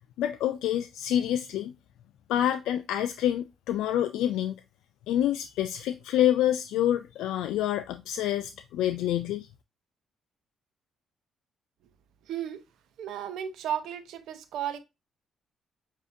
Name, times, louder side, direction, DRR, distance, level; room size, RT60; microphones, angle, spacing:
voice 1, 0.2-1.7 2.3-4.5 5.1-9.5, left 11 dB, 90° left, 0.3 m, -27 dB
voice 2, 12.3-12.6 13.0-14.8, right 10 dB, 80° right, 0.7 m, -34 dB
7.1 x 2.7 x 2.6 m
cardioid pair, 90°, 0 cm